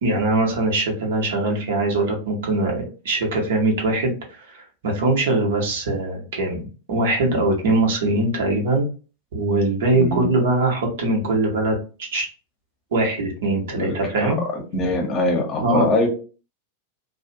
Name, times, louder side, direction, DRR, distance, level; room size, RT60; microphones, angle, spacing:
voice 1, 0.0-8.9 9.3-12.3 12.9-14.4 15.6-15.9, right 2 dB, 60° right, 0 dB, 0.9 m, -22 dB
voice 2, 9.9-10.3 13.8-16.1, left 2 dB, 25° left, 1 dB, 0.8 m, -23 dB
2.4 x 2.0 x 2.7 m, 0.36 s
figure-of-eight pair, 90°, 0 cm